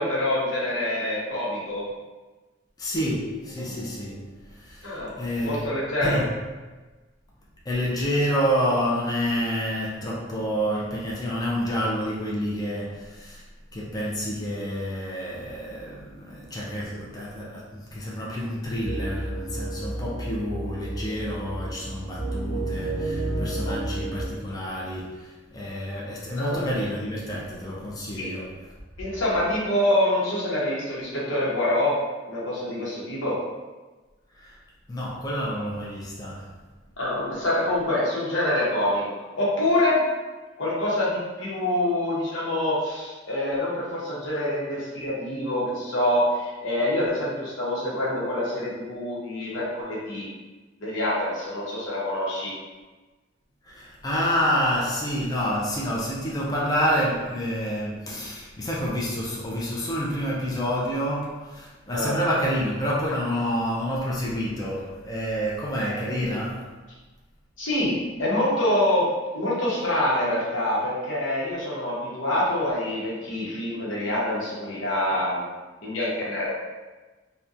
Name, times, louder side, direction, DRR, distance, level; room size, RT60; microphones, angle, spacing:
voice 1, 0.0-1.8 4.8-5.1 5.4-6.2 23.6-23.8 26.4-26.6 28.2-28.3 29.0-32.0 32.3-33.4 37.0-39.0 39.4-40.0 40.6-50.3 50.8-52.5 61.9-62.1 67.6-69.1 69.3-75.4 75.8-76.5, left 1 dB, 85° left, -6 dB, 0.9 m, -26 dB
voice 2, 2.8-5.7 6.0-6.3 7.6-13.4 13.7-28.6 34.3-34.6 34.9-36.5 53.6-66.7, equal, 20° left, -5 dB, 0.4 m, -28 dB
sound 1, 18.8-24.3, right 1 dB, 30° right, 0.6 m, -31 dB
2.7 x 2.2 x 2.4 m, 1.2 s
head